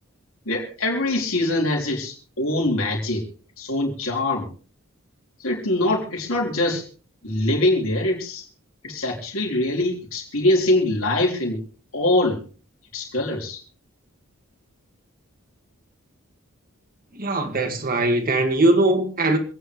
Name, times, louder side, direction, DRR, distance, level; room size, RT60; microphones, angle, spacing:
voice 1, 0.5-3.2 3.6-4.5 5.4-6.9 7.2-8.4 8.8-11.6 11.9-12.4 12.9-13.6, left 1 dB, 70° left, 4.1 m, -23 dB
voice 2, 17.1-19.4, right 2 dB, 45° right, 2.0 m, -20 dB
27.0 x 9.5 x 3.2 m
head